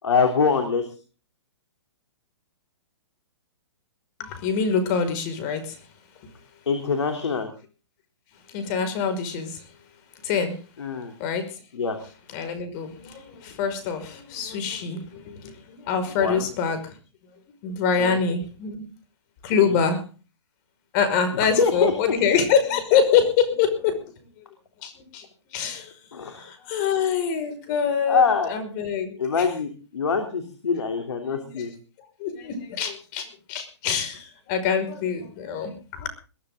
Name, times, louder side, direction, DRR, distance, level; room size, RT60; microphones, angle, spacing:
voice 1, 0.0-0.8 6.7-7.5 10.8-11.1 11.7-12.0 16.2-16.5 18.0-18.2 19.5-19.8 21.3-22.1 26.1-26.5 28.1-28.5 29.2-31.7, left 5 dB, 75° left, 5 dB, 3.4 m, -24 dB
voice 2, 4.2-5.8 8.5-9.6 10.2-10.6 11.2-11.5 12.3-16.9 17.6-18.9 19.4-20.0 20.9-24.0 24.8-25.3 25.5-25.9 26.4-29.2 31.2-31.7 32.2-36.1, left 6 dB, 40° left, 9 dB, 5.5 m, -25 dB
22.0 x 13.5 x 3.8 m, 0.36 s
hypercardioid pair, 130°, 15 cm